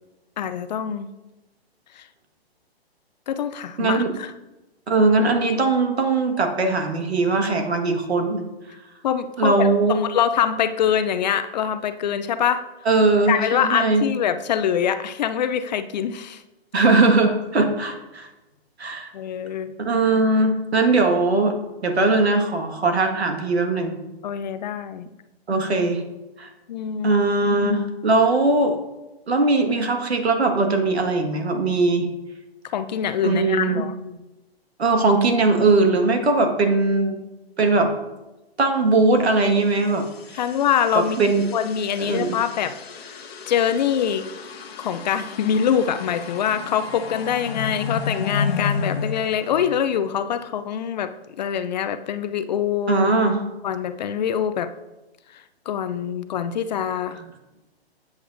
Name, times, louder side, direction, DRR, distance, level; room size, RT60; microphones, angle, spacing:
voice 1, 0.4-1.1 1.9-2.0 3.3-4.3 9.0-12.6 13.3-16.4 19.1-19.7 24.2-25.1 26.7-27.2 32.7-33.9 40.3-42.8 43.5-44.3 44.8-51.1 51.4-53.1 53.6-54.7 55.7-57.2, left 8 dB, 45° left, 11 dB, 0.6 m, -24 dB
voice 2, 3.8-4.2 4.9-8.5 9.4-10.0 12.9-14.0 16.7-18.3 18.8-19.1 19.8-21.6 21.8-24.0 25.5-26.0 26.4-26.5 27.0-28.8 29.3-32.1 33.2-33.8 34.8-37.2 37.6-37.9 38.6-40.1 40.3-40.4 41.0-41.5 42.0-42.3 52.9-53.4, right 3 dB, 80° right, 5 dB, 1.8 m, -20 dB
sound 1, 39.6-50.2, left 5 dB, 75° left, 1.2 m, -32 dB
13.0 x 8.2 x 2.6 m, 1.0 s
figure-of-eight pair, 130°, 32 cm